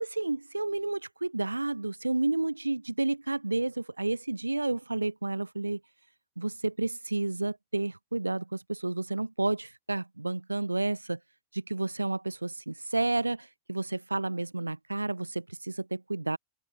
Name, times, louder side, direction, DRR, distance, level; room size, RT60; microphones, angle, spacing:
voice 1, 0.0-5.8 6.4-11.2 11.5-16.4, right 2 dB, 85° right, 0.5 m, -31 dB
figure-of-eight pair, 90°, 0 cm